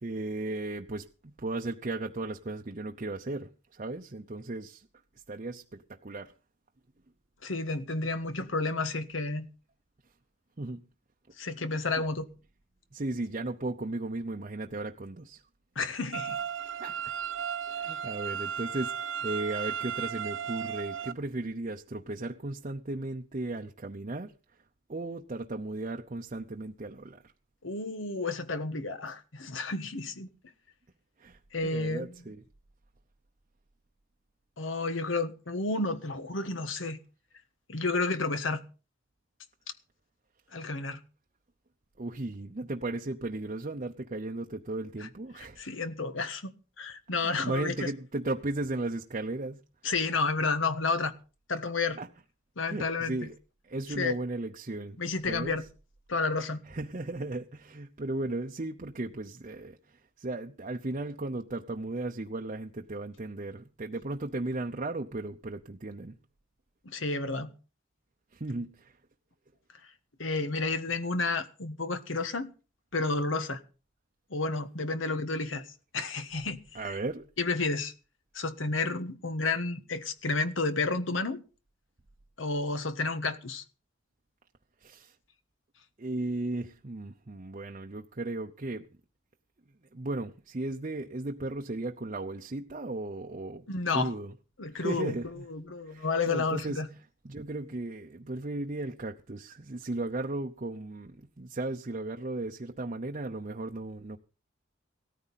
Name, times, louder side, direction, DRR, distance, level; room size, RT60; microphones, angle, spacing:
voice 1, 0.0-4.9 5.3-6.3 10.6-10.8 12.0-12.1 12.9-15.4 16.8-17.1 17.7-24.3 24.9-27.2 31.2-32.4 42.0-45.7 47.2-49.6 52.0-52.1 52.7-53.4 53.6-55.0 55.3-55.6 56.7-66.2 68.3-69.0 76.7-77.3 84.8-85.1 86.0-88.9 89.9-93.6 93.9-94.3 94.7-95.5 95.9-96.8 97.2-104.2, right 2 dB, 40° right, 0.7 m, -36 dB
voice 2, 7.4-9.5 11.4-12.3 15.7-16.4 27.6-30.3 31.5-32.1 34.6-37.0 37.7-38.6 40.5-41.0 45.0-45.1 45.6-47.9 49.8-51.1 51.5-52.0 52.6-53.2 54.0-54.1 55.0-55.6 56.1-56.6 66.8-67.5 70.2-72.5 72.9-73.6 74.3-75.7 75.9-76.8 77.4-77.9 78.3-81.4 82.4-83.6 93.7-94.1 94.6-95.1 95.5-96.9, left 3 dB, 80° left, 1.4 m, -31 dB
sound 1, 16.1-21.1, right 7 dB, 85° right, 1.1 m, -35 dB
17.0 x 14.0 x 4.1 m
head